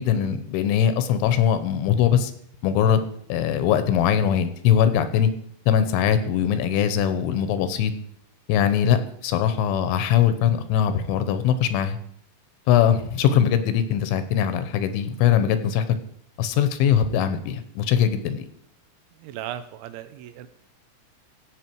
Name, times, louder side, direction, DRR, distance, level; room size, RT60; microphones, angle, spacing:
voice 1, 0.0-2.3 2.6-5.3 5.7-7.9 8.5-9.0 9.2-12.0 12.7-15.9 16.4-18.5, left 9 dB, 85° left, 10 dB, 3.3 m, -21 dB
voice 2, 19.2-20.5, right 11 dB, 80° right, 12 dB, 3.1 m, -37 dB
16.5 x 7.2 x 4.6 m, 0.66 s
omnidirectional pair, 5.4 m